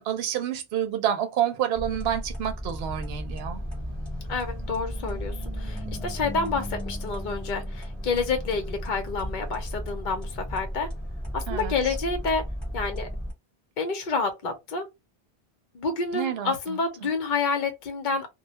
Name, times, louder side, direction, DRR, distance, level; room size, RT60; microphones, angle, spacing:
voice 1, 0.0-3.6 11.5-11.9 16.1-16.8, right 10 dB, 75° right, 0.8 m, -28 dB
sound 1, 1.8-13.3, equal, ahead, 0.9 m, -34 dB
voice 2, 4.3-10.9 11.3-12.4 12.7-13.1 13.8-14.8 15.7-18.3, left 4 dB, 55° left, 0.7 m, -29 dB
2.2 x 2.1 x 2.7 m
omnidirectional pair, 1.1 m